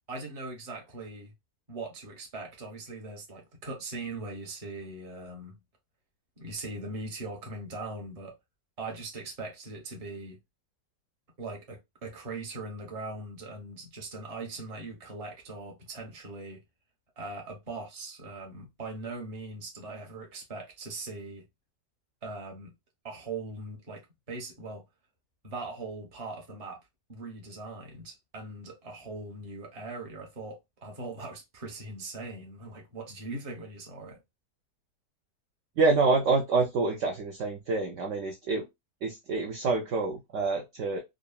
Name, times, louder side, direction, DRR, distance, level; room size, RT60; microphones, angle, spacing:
voice 1, 0.1-1.3 1.7-5.6 6.4-8.3 8.8-10.4 11.4-16.6 17.2-21.5 22.2-22.7 23.0-24.8 25.4-26.8 27.1-34.2, right 3 dB, 30° right, 0.7 m, -40 dB
voice 2, 35.8-38.6 39.0-41.0, right 3 dB, 70° right, 0.7 m, -27 dB
3.6 x 2.0 x 2.3 m
omnidirectional pair, 1.8 m